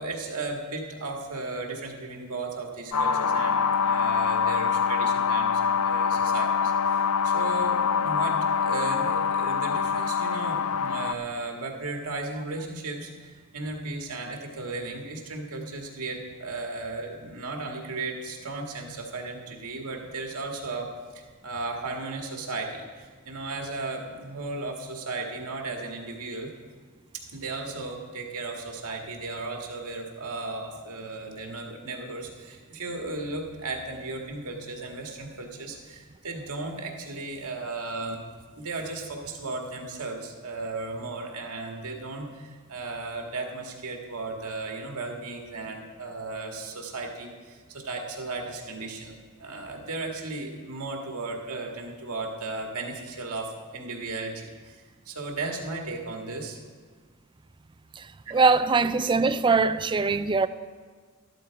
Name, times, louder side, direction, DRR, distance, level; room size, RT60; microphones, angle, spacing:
voice 1, 0.0-26.5 27.1-38.2 38.5-56.6 58.3-58.5, right 3 dB, 85° right, 1.8 m, -35 dB
sound 1, 2.9-11.1, left 6 dB, 90° left, 0.5 m, -25 dB
voice 2, 58.3-60.5, right 4 dB, 20° right, 0.4 m, -22 dB
12.5 x 12.0 x 4.7 m
head